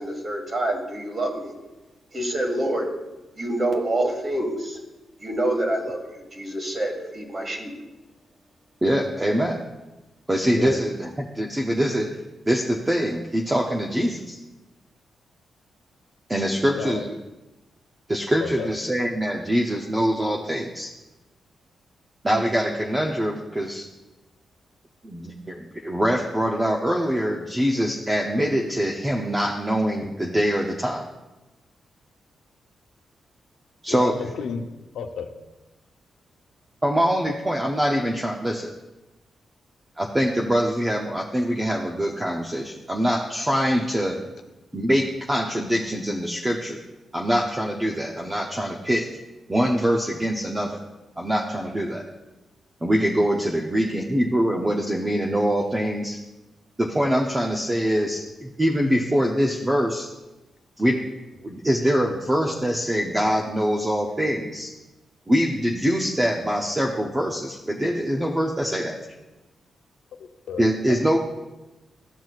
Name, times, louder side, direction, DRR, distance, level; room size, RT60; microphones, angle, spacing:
voice 1, 0.0-1.5 2.1-2.9 3.4-4.8 5.2-7.7, right 1 dB, 30° right, 1 dB, 1.7 m, -27 dB
voice 2, 8.8-9.6 10.3-12.1 12.5-14.4 16.3-17.2 18.1-20.9 22.2-23.9 25.0-31.1 33.8-34.2 36.8-38.7 40.0-44.2 44.7-46.8 47.1-49.1 49.5-50.8 51.2-52.0 52.8-56.2 56.8-60.1 60.8-61.0 61.4-64.7 65.3-69.0 70.6-71.2, equal, 15° right, 0 dB, 0.6 m, -24 dB
voice 3, 33.9-34.6 34.9-35.3 70.2-71.0, left 6 dB, 80° left, 5 dB, 0.7 m, -32 dB
14.0 x 6.0 x 2.4 m, 1.0 s
cardioid pair, 120°, 0 cm